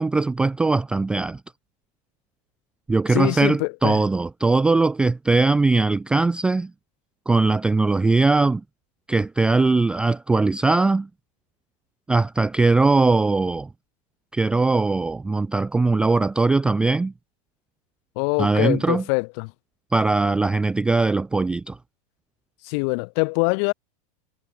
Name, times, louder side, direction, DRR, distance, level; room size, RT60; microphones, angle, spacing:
voice 1, 0.0-1.4 2.9-6.7 7.3-8.6 9.1-11.1 12.1-13.7 14.3-17.1 18.4-19.0 19.9-21.8, right 3 dB, 5° right, 0.5 m, -20 dB
voice 2, 3.1-4.0 18.2-19.5 22.6-23.7, left 38 dB, 45° left, 4.2 m, -24 dB
supercardioid pair, 170°, 19 cm